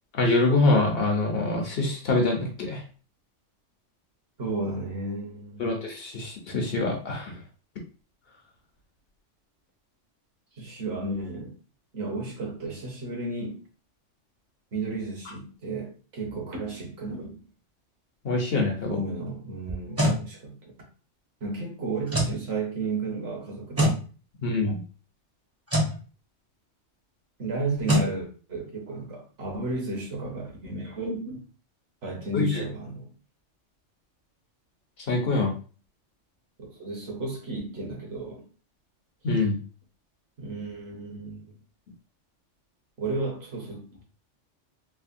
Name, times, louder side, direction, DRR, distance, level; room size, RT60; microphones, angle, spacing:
voice 1, 0.1-2.8 5.6-7.3 18.2-19.0 24.4-24.8 32.3-32.6 35.1-35.5 39.2-39.6, left 2 dB, 60° left, 0.8 m, -24 dB
voice 2, 4.4-5.9 10.6-11.5 11.9-13.6 14.7-17.4 18.9-20.7 21.4-24.0 27.4-31.5 32.0-33.1 36.6-38.5 39.3-39.4 40.4-41.5 43.0-44.0, right 3 dB, 60° right, 1.1 m, -33 dB
sound 1, 19.7-20.2 22.1-22.4 23.8-24.0 25.7-25.9 27.9-28.1, equal, 15° right, 0.6 m, -23 dB
3.3 x 2.0 x 2.5 m
omnidirectional pair, 1.2 m